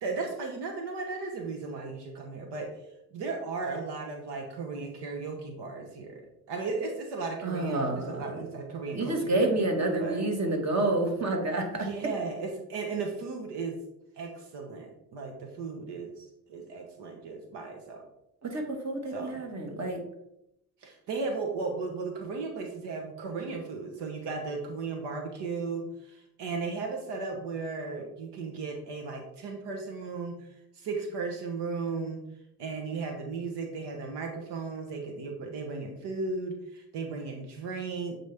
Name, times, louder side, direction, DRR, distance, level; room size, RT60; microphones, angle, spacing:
voice 1, 0.0-2.7 3.1-6.2 6.5-10.2 11.8-13.8 14.2-18.0 19.1-19.4 20.8-30.5 30.7-32.2 32.6-38.2, right 4 dB, 85° right, 3 dB, 1.0 m, -36 dB
voice 2, 7.4-8.2 8.9-11.9 18.4-20.0, right 2 dB, 40° right, 3 dB, 1.6 m, -28 dB
7.8 x 4.1 x 3.4 m, 0.83 s
cardioid pair, 65°, 40 cm